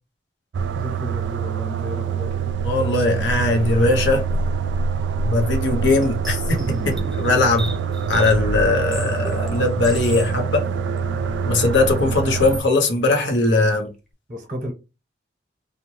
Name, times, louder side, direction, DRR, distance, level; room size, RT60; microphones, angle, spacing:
sound 1, 0.5-12.6, right 6 dB, 80° right, 0.3 m, -25 dB
voice 1, 0.7-2.4 14.3-14.7, equal, 45° right, 0.8 m, -32 dB
voice 2, 2.6-4.2 5.2-7.8 8.1-10.7 11.4-13.9, left 2 dB, 85° left, 0.7 m, -20 dB
sound 2, 5.7-10.3 11.0-11.1 12.3-12.6 13.2-13.5, equal, ahead, 0.5 m, -32 dB
2.7 x 2.1 x 3.0 m
head